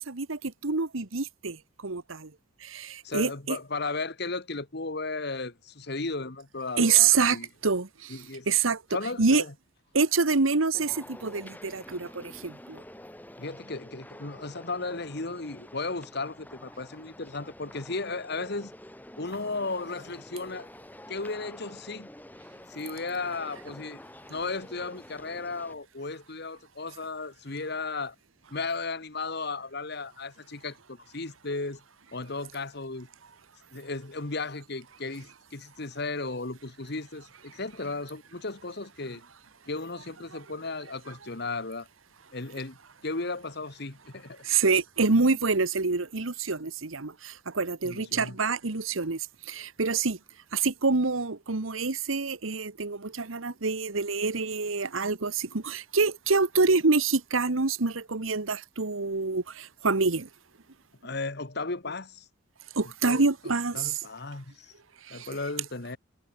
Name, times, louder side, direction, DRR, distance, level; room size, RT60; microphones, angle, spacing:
voice 1, 0.0-1.6 1.8-2.3 2.6-3.6 6.8-7.9 8.5-8.8 9.2-9.4 9.9-12.8 44.4-49.2 49.5-50.2 50.5-60.3 62.8-63.9 65.1-65.3, right 4 dB, 85° right, 1.4 m, -26 dB
voice 2, 3.0-7.5 8.1-8.5 8.9-9.5 13.4-18.7 19.2-20.7 21.1-22.1 22.7-24.0 24.3-28.1 28.5-31.8 32.1-33.1 33.7-39.2 39.7-41.9 42.3-42.8 43.0-44.4 47.8-48.4 61.0-62.3 63.0-63.2 63.7-64.7 65.1-66.0, left 3 dB, 55° left, 1.7 m, -35 dB
sound 1, 10.7-25.7, left 1 dB, 10° left, 2.7 m, -48 dB
head